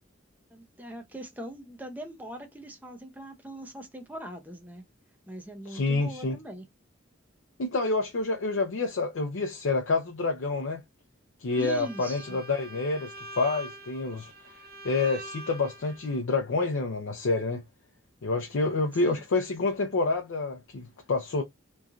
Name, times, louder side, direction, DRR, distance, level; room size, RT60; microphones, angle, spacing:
voice 1, 0.5-4.8 5.3-6.7 11.6-12.4 19.0-19.2, right 1 dB, 10° right, 0.6 m, -41 dB
voice 2, 5.7-6.4 7.6-10.8 11.4-14.3 14.8-17.6 18.2-21.4, left 3 dB, 75° left, 0.5 m, -28 dB
Bowed string instrument, 11.5-16.2, right 1 dB, 50° right, 0.6 m, -44 dB
3.1 x 2.5 x 2.3 m
head